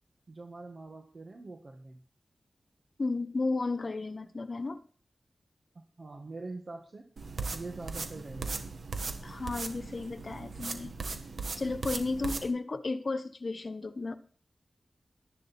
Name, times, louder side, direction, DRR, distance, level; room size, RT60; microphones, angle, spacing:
voice 1, 0.3-2.0 5.7-7.1 7.5-8.7, right 3 dB, 50° right, 1.7 m, -44 dB
voice 2, 3.0-4.8 9.2-11.0 11.6-14.2, left 3 dB, 50° left, 1.1 m, -33 dB
sound 1, 7.2-12.5, right 4 dB, 75° right, 1.6 m, -38 dB
12.5 x 10.5 x 4.4 m
wide cardioid pair, 75°, 0 cm